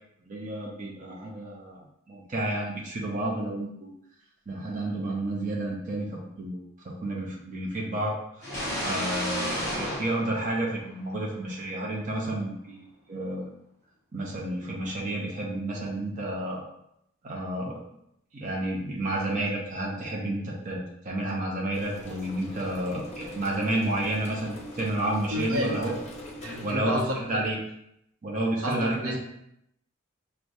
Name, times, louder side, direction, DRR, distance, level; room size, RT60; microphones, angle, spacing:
voice 1, 0.3-3.9 4.5-6.6 6.8-8.5 8.8-13.5 14.1-16.6 17.2-17.8 18.3-25.9 26.6-27.6 28.2-29.2, right 1 dB, 35° right, -3 dB, 0.6 m, -31 dB
sound 1, 8.4-11.2, equal, 15° left, 1.4 m, -32 dB
sound 2, 21.7-26.7, left 1 dB, 30° left, 0.6 m, -42 dB
voice 2, 25.3-25.8 26.4-27.4 28.6-29.2, equal, 75° right, 0 dB, 0.8 m, -30 dB
6.2 x 2.2 x 2.6 m, 0.78 s
head